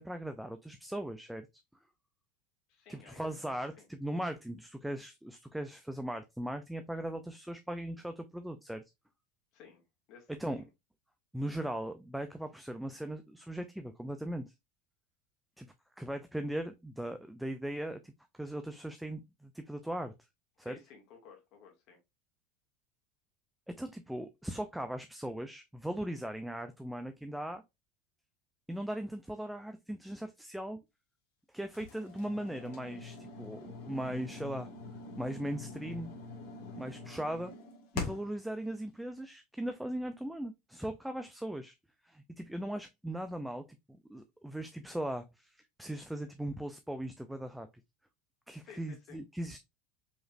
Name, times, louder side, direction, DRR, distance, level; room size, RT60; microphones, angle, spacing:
voice 1, 0.0-1.5 2.9-8.8 10.4-10.6 11.3-14.5 15.6-15.7 16.0-20.1 20.6-20.8 23.8-27.6 28.7-30.8 31.5-33.6 33.9-34.7 35.2-36.1 36.8-37.5 37.9-41.7 42.0-43.6 44.1-47.7 48.5-49.6, right 1 dB, 5° right, 0.4 m, -39 dB
voice 2, 2.7-3.9 9.5-9.8 10.1-10.7 20.6-22.0 36.7-37.0 48.6-49.2, left 7 dB, 55° left, 2.0 m, -55 dB
sound 1, 31.7-38.4, left 4 dB, 70° left, 1.7 m, -44 dB
5.1 x 3.1 x 2.5 m
supercardioid pair, 125°, 0 cm